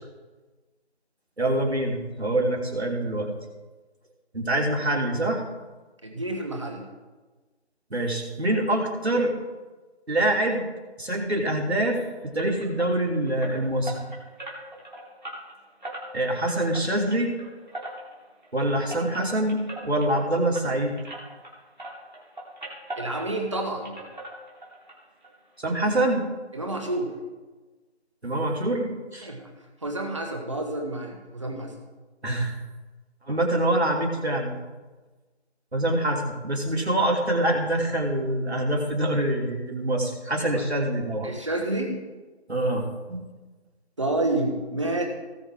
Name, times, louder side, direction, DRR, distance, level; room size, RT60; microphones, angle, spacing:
voice 1, 1.4-3.3 4.3-5.4 7.9-9.3 10.1-10.7 11.0-14.1 16.1-17.3 18.5-21.0 25.6-26.2 28.2-29.3 32.2-32.6 33.3-34.6 35.7-41.3 42.5-43.2, right 1 dB, 70° right, 0 dB, 3.0 m, -25 dB
voice 2, 6.0-6.8 22.9-23.9 26.5-27.1 29.2-29.4 29.8-31.7 40.5-40.6 41.2-42.0 44.0-45.0, right 2 dB, 25° right, 3 dB, 1.5 m, -29 dB
sound 1, 12.4-21.5 21.8-23.6 23.8-24.9 25.2-25.3 25.8-25.9 26.2-26.3, right 1 dB, 45° right, 3.7 m, -40 dB
18.5 x 6.8 x 3.6 m, 1.2 s
figure-of-eight pair, 165°, 33 cm